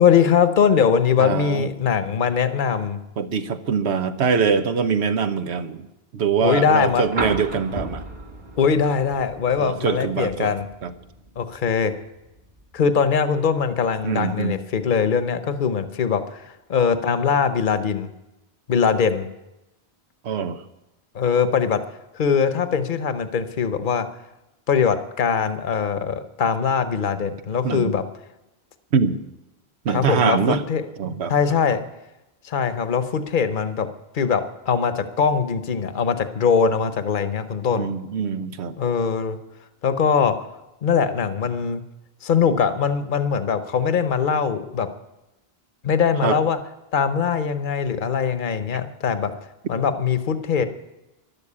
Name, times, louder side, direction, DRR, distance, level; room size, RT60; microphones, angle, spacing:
voice 1, 0.0-3.0 6.4-7.0 8.6-10.6 11.4-11.9 12.7-18.1 18.7-19.3 21.1-21.8 22.1-24.1 24.7-28.0 29.9-30.9 31.3-31.8 32.4-33.9 34.1-37.9 38.8-39.4 39.8-40.4 40.8-41.8 42.2-44.9 45.8-46.6 46.9-49.3 49.7-50.7, left 6 dB, 50° left, 11 dB, 1.0 m, -21 dB
voice 2, 1.2-1.7 3.2-5.9 6.1-8.1 9.6-10.5 10.8-10.9 14.0-14.6 20.2-20.6 27.6-27.9 28.9-29.2 29.8-30.6 31.0-31.3 37.7-38.7 46.2-46.4, right 6 dB, 80° right, 11 dB, 1.2 m, -23 dB
sound 1, 6.7-14.7 16.1-16.2, right 2 dB, 45° right, 1.6 m, -36 dB
12.5 x 12.0 x 8.5 m, 0.96 s
omnidirectional pair, 1.1 m